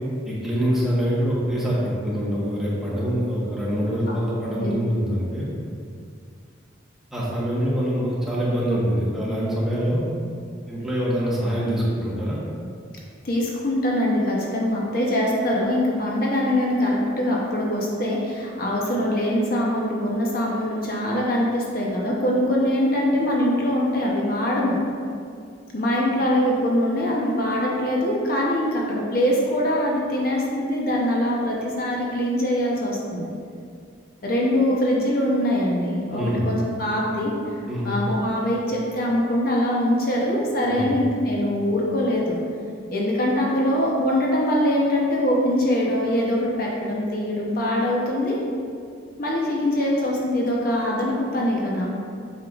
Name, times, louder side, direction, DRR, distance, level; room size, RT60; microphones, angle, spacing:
voice 1, 0.2-5.5 7.1-10.1 10.7-12.4 36.1-36.4 37.7-37.9 40.6-40.9, equal, ahead, -8 dB, 1.2 m, -24 dB
voice 2, 13.2-24.8 25.7-33.2 34.2-37.3 37.8-42.4 42.9-48.4 49.2-51.9, left 1 dB, 50° left, -3 dB, 0.8 m, -23 dB
7.7 x 5.5 x 2.4 m, 2.3 s
head